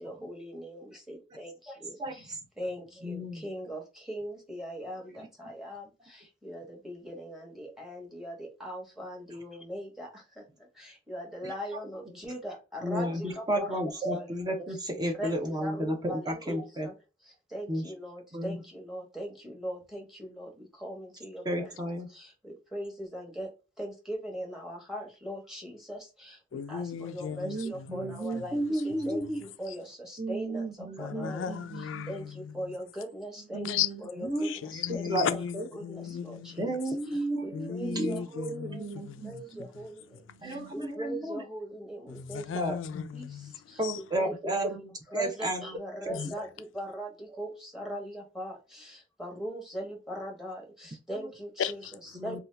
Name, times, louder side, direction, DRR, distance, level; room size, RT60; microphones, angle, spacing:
voice 1, 0.0-2.2 2.6-13.8 14.1-14.3 15.1-15.3 15.6-16.9 17.5-21.7 22.1-23.5 23.8-31.5 32.1-33.7 34.0-34.1 34.4-35.0 35.9-36.7 37.4-38.9 39.2-42.4 43.1-43.3 43.7-43.8 44.2-44.3 44.6-44.8 45.1-51.6 52.2-52.4, equal, 5° right, 1.1 m, -40 dB
voice 2, 2.0-2.4 3.0-3.4 5.2-5.3 11.4-11.5 12.8-16.9 17.7-17.9 18.3-18.6 21.4-22.1 27.4-29.4 30.2-32.1 33.5-33.9 34.3-34.5 35.1-35.3 35.5-35.6 36.6-39.6 40.3-41.4 42.5-42.8 43.8-46.3 47.3-47.4 51.1-51.3 52.1-52.4, right 1 dB, 20° right, 0.7 m, -33 dB
voice 3, 26.5-29.8 31.0-32.8 33.6-33.9 34.2-36.8 37.1-37.2 37.5-40.6 42.1-44.0 46.1-46.3 51.6-52.2, left 8 dB, 80° left, 0.3 m, -37 dB
2.8 x 2.3 x 3.3 m
head